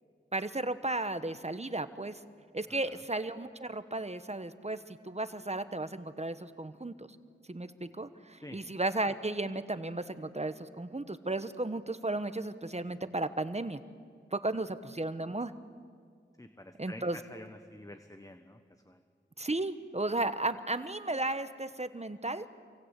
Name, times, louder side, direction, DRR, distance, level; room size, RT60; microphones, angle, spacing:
voice 1, 0.3-2.2 2.5-7.1 7.5-13.8 14.3-15.5 16.8-17.2 19.4-22.5, right 2 dB, 35° right, 11 dB, 1.2 m, -34 dB
voice 2, 16.4-18.6 18.9-19.0, left 1 dB, 15° left, 7 dB, 1.4 m, -48 dB
27.5 x 25.0 x 8.4 m, 2.1 s
wide cardioid pair, 55°, 20 cm